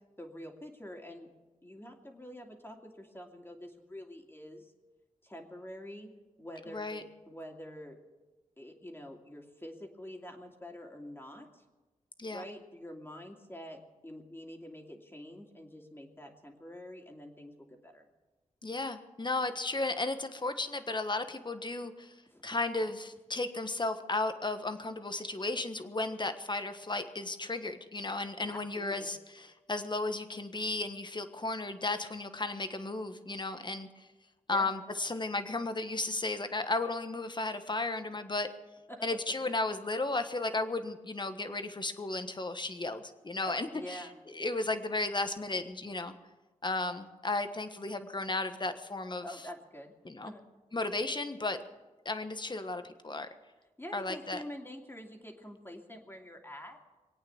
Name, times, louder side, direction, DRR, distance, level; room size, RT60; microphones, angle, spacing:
voice 1, 0.2-1.3 1.6-4.7 5.2-6.1 6.4-8.0 8.6-11.6 12.3-18.1 22.3-22.4 28.5-29.1 34.5-34.7 38.9-39.2 43.5-44.1 49.2-49.9 50.2-50.4 53.8-56.8, equal, 15° left, 1 dB, 2.7 m, -46 dB
voice 2, 6.7-7.0 12.2-12.4 18.6-22.1 22.4-34.1 34.5-38.5 39.0-44.1 44.3-46.1 46.6-49.2 50.0-50.3 50.7-51.6 52.0-53.3 53.9-54.4, left 2 dB, 35° left, 9 dB, 1.4 m, -34 dB
22.5 x 8.8 x 7.2 m, 1.2 s
cardioid pair, 60°, 14 cm